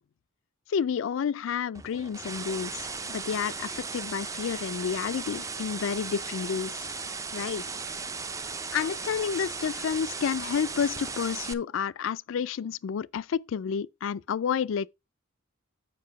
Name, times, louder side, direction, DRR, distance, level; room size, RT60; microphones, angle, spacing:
voice 1, 0.7-6.9 7.3-7.6 8.7-14.9, left 7 dB, 65° left, 0.3 m, -30 dB
sound 1, 1.7-11.5, right 4 dB, 15° right, 0.4 m, -36 dB
7.6 x 5.3 x 4.7 m
head